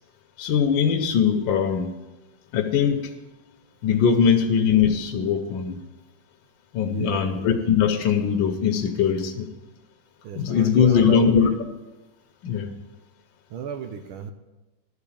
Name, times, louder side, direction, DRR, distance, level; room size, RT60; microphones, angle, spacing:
voice 1, 0.4-1.9 2.5-3.1 3.8-5.8 6.7-9.5 10.4-11.6 12.4-12.7, left 7 dB, 70° left, 3 dB, 1.5 m, -21 dB
voice 2, 6.9-7.4 10.2-11.6 13.5-14.3, right 7 dB, 85° right, 7 dB, 1.6 m, -34 dB
12.0 x 4.9 x 8.6 m, 1.1 s
omnidirectional pair, 2.3 m